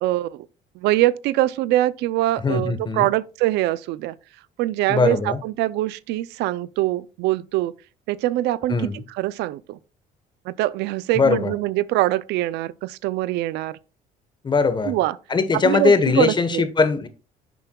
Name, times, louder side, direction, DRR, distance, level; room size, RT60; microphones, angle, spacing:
voice 1, 0.0-0.5 0.8-4.2 4.6-7.7 8.1-9.8 10.5-13.8 14.9-15.2 15.5-16.6, right 16 dB, 85° right, 0.4 m, -23 dB
voice 2, 2.4-3.1 4.9-5.4 8.7-9.0 11.2-11.5 14.4-14.9 15.3-17.1, left 4 dB, 25° left, 1.1 m, -20 dB
10.5 x 6.9 x 2.3 m
cardioid pair, 110°, 17 cm